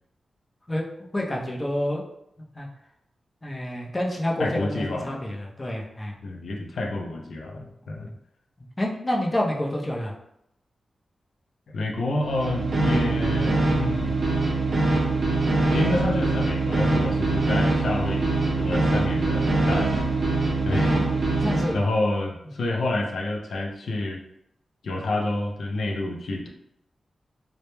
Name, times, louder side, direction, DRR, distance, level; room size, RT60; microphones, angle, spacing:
voice 1, 1.1-2.0 2.6-2.7 3.4-6.1 8.8-10.1 20.8-21.1 21.4-21.8, left 1 dB, 20° left, -2 dB, 0.5 m, -28 dB
voice 2, 4.4-5.2 6.2-8.1 11.7-14.1 15.7-20.1 20.6-21.0 21.7-24.2 24.8-26.5, left 2 dB, 80° left, 0 dB, 0.3 m, -28 dB
sound 1, 12.2-21.8, right 2 dB, 60° right, 0.5 m, -23 dB
2.1 x 2.0 x 3.0 m, 0.78 s
wide cardioid pair, 90°, 0 cm